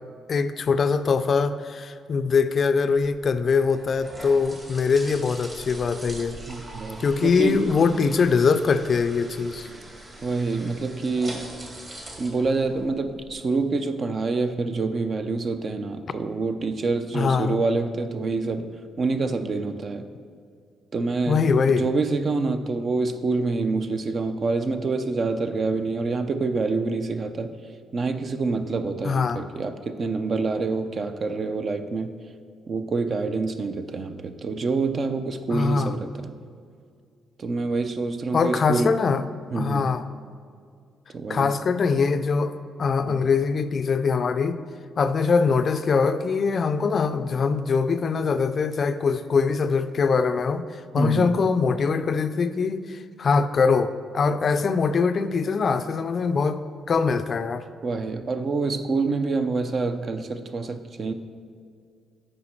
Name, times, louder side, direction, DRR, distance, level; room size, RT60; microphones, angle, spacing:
voice 1, 0.3-6.4 7.0-9.7 17.1-17.6 21.3-21.9 29.0-29.4 35.5-35.9 38.3-39.2 39.5-40.0 41.3-42.5 42.8-44.6 45.0-56.6 56.9-57.6, left 5 dB, 45° left, 11 dB, 0.4 m, -22 dB
sound 1, 3.0-13.3, right 1 dB, 30° right, 1.7 m, -42 dB
voice 2, 6.5-7.6 10.2-11.5 12.2-18.7 19.0-20.1 20.9-27.5 27.9-32.2 32.7-36.3 37.4-39.0 39.5-39.9 41.1-41.5 43.1-43.3 51.0-51.4 57.8-61.1, right 3 dB, 45° right, 9 dB, 0.5 m, -27 dB
8.2 x 5.1 x 4.4 m, 2.2 s
cardioid pair, 90°, 0 cm